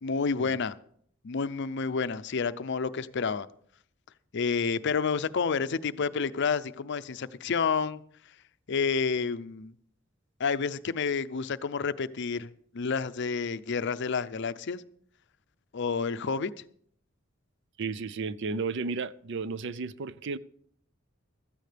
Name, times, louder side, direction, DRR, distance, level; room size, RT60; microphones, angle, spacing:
voice 1, 0.0-0.8 1.2-3.5 4.3-8.0 8.7-9.7 10.4-12.5 12.7-14.8 15.7-16.5, left 5 dB, 60° left, 0.5 m, -29 dB
voice 2, 17.8-20.4, right 4 dB, 60° right, 0.5 m, -33 dB
16.0 x 13.5 x 3.4 m
head